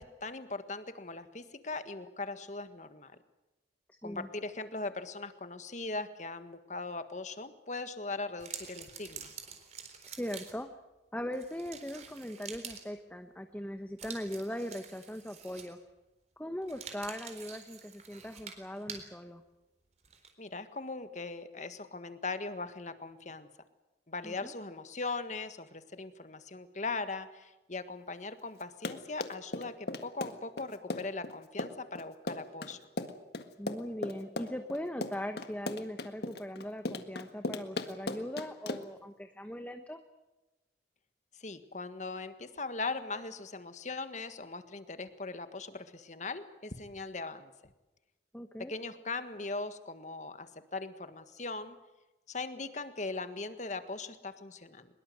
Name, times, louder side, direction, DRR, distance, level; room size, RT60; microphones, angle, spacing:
voice 1, 0.0-3.1 4.0-9.3 20.4-23.5 24.1-32.8 41.4-47.5 48.6-51.8 52.3-54.9, left 3 dB, 45° left, 10 dB, 1.6 m, -40 dB
voice 2, 3.9-4.3 10.0-10.7 11.1-15.8 16.4-19.4 24.2-24.5 33.6-40.0 48.3-48.7, equal, 10° left, 7 dB, 1.1 m, -40 dB
sound 1, 8.4-10.7 11.3-12.9 14.0-15.9 16.6-19.1 20.0-20.3, right 7 dB, 40° right, 3.9 m, -47 dB
Run, 28.6-39.0, left 2 dB, 60° left, 1.7 m, -37 dB
23.5 x 21.5 x 7.9 m, 1.0 s
head